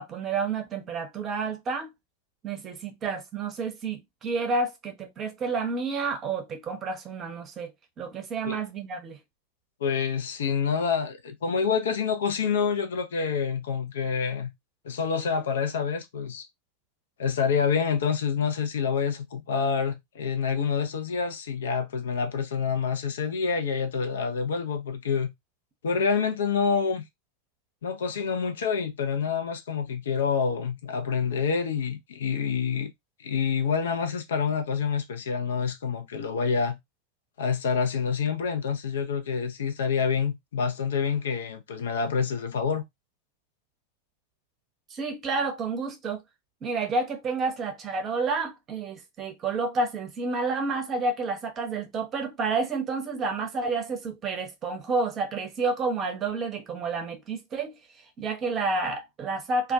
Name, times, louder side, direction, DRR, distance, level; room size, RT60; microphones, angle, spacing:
voice 1, 0.0-1.9 2.4-7.7 8.0-9.2 44.9-46.2 46.6-57.8 58.2-59.7, right 3 dB, 30° right, 0.7 m, -30 dB
voice 2, 9.8-14.5 14.8-16.4 17.2-25.3 25.8-27.0 27.8-32.9 33.2-36.8 37.4-42.8, left 6 dB, 65° left, 0.5 m, -27 dB
2.2 x 2.2 x 2.5 m
figure-of-eight pair, 85°, 0 cm